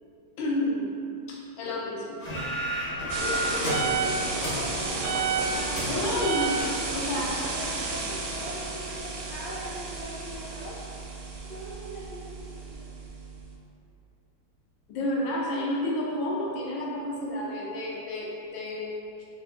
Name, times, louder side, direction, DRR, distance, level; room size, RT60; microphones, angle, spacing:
voice 1, 0.4-0.9 1.3-2.2 3.1-4.3 5.9-7.4 7.9-8.0 14.9-19.3, left 1 dB, 85° left, -3 dB, 1.5 m, -31 dB
sound 1, 2.2-7.1, right 1 dB, 45° left, 0.7 m, -33 dB
voice 2, 3.1-5.1 5.4-10.8 11.4-13.2 16.7-16.8, equal, 70° left, -10 dB, 1.5 m, -42 dB
sound 2, 3.1-13.5, right 4 dB, 75° right, 0.9 m, -32 dB
4.5 x 2.4 x 3.7 m, 2.6 s
omnidirectional pair, 2.1 m